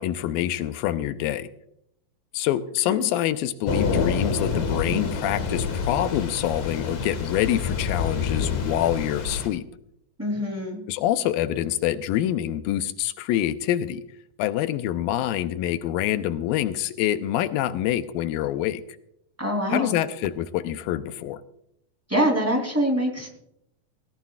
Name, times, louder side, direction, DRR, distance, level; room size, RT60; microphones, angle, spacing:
voice 1, 0.0-1.5 2.3-9.6 10.9-14.0 14.4-18.8 19.7-21.4, left 12 dB, 90° left, 12 dB, 2.4 m, -26 dB
Thunder / Rain, 3.7-9.5, left 5 dB, 55° left, 2.8 m, -27 dB
voice 2, 10.2-10.8 19.4-19.9 22.1-23.3, equal, 5° right, 1 dB, 2.7 m, -24 dB
18.0 x 17.5 x 2.4 m, 0.75 s
omnidirectional pair, 4.1 m